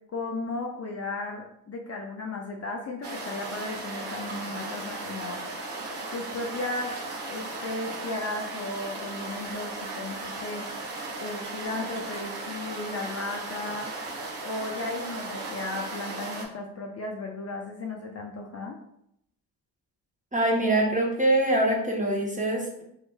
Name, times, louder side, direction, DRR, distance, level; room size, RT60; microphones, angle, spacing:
voice 1, 0.1-5.4 6.1-6.9 7.3-10.7 11.2-13.9 14.4-18.8, left 2 dB, 35° left, 0 dB, 0.5 m, -35 dB
sound 1, 3.0-16.5, right 2 dB, 60° right, 1.0 m, -36 dB
voice 2, 20.3-22.8, right 1 dB, 15° right, 0 dB, 0.8 m, -24 dB
3.1 x 3.0 x 2.2 m, 0.74 s
hypercardioid pair, 45°, 47 cm